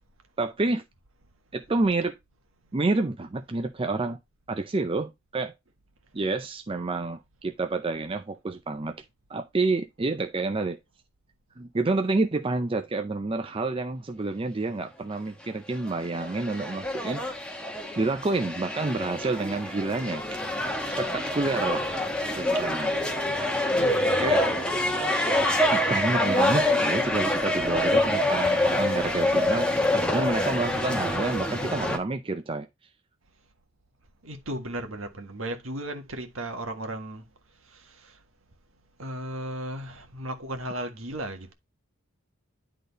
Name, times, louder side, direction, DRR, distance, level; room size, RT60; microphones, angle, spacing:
voice 1, 0.4-0.8 1.5-2.1 2.7-4.2 4.5-5.5 6.1-9.0 9.3-10.8 11.6-17.2 18.0-20.4 20.9-21.8 22.3-22.9 24.2-24.5 25.7-29.7 29.9-32.7, right 3 dB, 25° right, 0.5 m, -28 dB
sound 1, 15.9-32.0, left 1 dB, 5° left, 1.2 m, -26 dB
voice 2, 23.8-24.8 27.8-27.9 34.2-37.2 37.7-38.2 39.0-41.5, right 1 dB, 65° right, 1.6 m, -36 dB
10.5 x 3.9 x 4.0 m
head